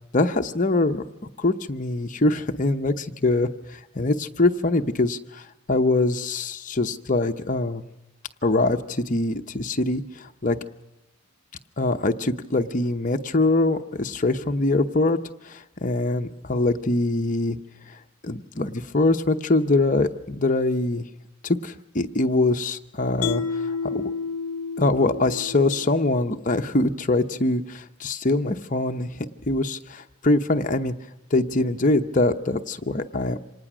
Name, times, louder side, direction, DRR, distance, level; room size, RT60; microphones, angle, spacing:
voice 1, 0.1-1.0 1.4-7.8 8.4-10.6 11.8-15.2 15.4-17.6 17.9-18.0 18.2-21.0 21.4-24.1 24.8-29.2 29.5-30.9 31.3-33.4, left 2 dB, 35° left, 6 dB, 0.8 m, -23 dB
Mallet percussion, 23.2-26.5, left 5 dB, 85° left, 0.7 m, -31 dB
26.0 x 19.0 x 6.2 m, 1.0 s
head